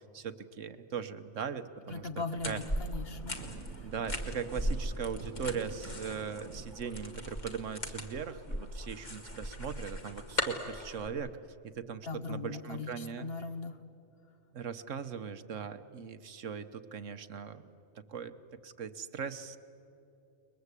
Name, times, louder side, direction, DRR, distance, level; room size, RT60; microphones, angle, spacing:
voice 1, 0.0-2.1 2.4-2.6 3.8-11.3 11.6-13.3 14.5-17.7 17.9-18.4 18.6-19.6, right 6 dB, 70° right, 11 dB, 1.3 m, -39 dB
voice 2, 1.9-3.4 12.0-13.8, left 3 dB, 50° left, 9 dB, 1.3 m, -39 dB
Wind, 1.9-7.5, right 5 dB, 90° right, 1.4 m, -50 dB
sound 1, 2.4-11.1, equal, 35° left, 2.1 m, -38 dB
30.0 x 21.5 x 8.3 m, 2.7 s
omnidirectional pair, 1.4 m